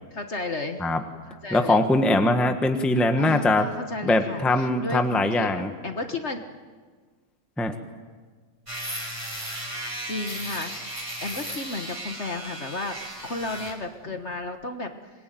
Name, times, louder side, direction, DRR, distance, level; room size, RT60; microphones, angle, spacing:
voice 1, 0.1-0.8 1.4-1.8 3.1-6.4 10.0-13.0 13.2-15.1, left 2 dB, 40° left, 6 dB, 1.5 m, -33 dB
voice 2, 1.5-3.7 4.0-5.7 7.6-7.7, left 2 dB, ahead, 6 dB, 1.1 m, -22 dB
sound 1, 8.7-13.8, right 1 dB, 15° right, 3.8 m, -35 dB
25.5 x 20.5 x 9.3 m, 1.5 s
omnidirectional pair, 2.0 m